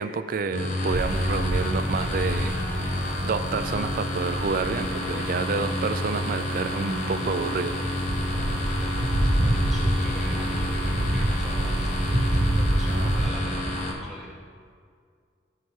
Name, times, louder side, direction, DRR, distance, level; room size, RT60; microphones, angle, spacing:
voice 1, 0.0-7.8 12.9-13.1, right 4 dB, 50° right, 12 dB, 0.4 m, -29 dB
sound 1, 0.5-13.9, left 1 dB, 45° left, 1.1 m, -30 dB
sound 2, 0.9-13.3, right 1 dB, 65° right, 1.1 m, -28 dB
voice 2, 8.3-14.4, right 1 dB, ahead, -5 dB, 0.7 m, -43 dB
14.0 x 5.8 x 3.6 m, 2.1 s
head